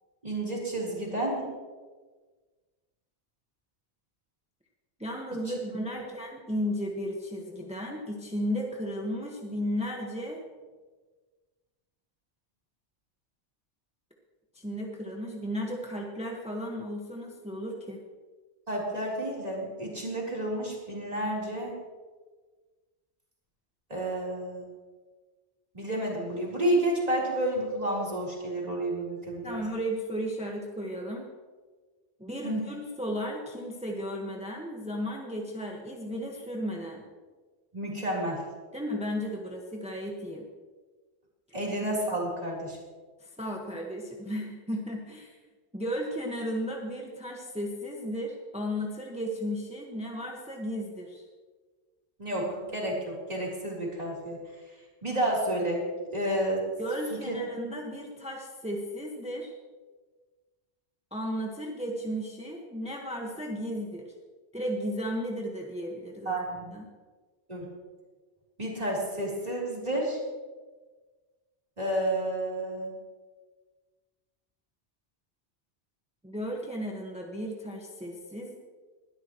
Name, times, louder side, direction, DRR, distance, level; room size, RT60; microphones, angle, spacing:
voice 1, 0.2-1.5 5.9-6.0 18.7-21.8 23.9-24.7 25.7-29.6 32.4-32.7 37.7-38.4 41.5-42.8 52.2-54.4 55.0-55.8 56.1-56.7 57.3-57.4 66.3-66.7 67.5-67.7 68.6-70.2 71.8-72.9, right 1 dB, 35° right, -4 dB, 4.0 m, -30 dB
voice 2, 5.0-10.4 14.5-18.0 29.4-31.3 32.2-37.0 38.7-40.5 43.2-45.4 45.7-51.3 56.8-59.5 61.1-64.1 64.5-66.4 66.7-66.8 76.2-78.5, equal, 5° right, 0 dB, 1.4 m, -34 dB
20.0 x 13.0 x 3.1 m, 1.4 s
omnidirectional pair, 1.2 m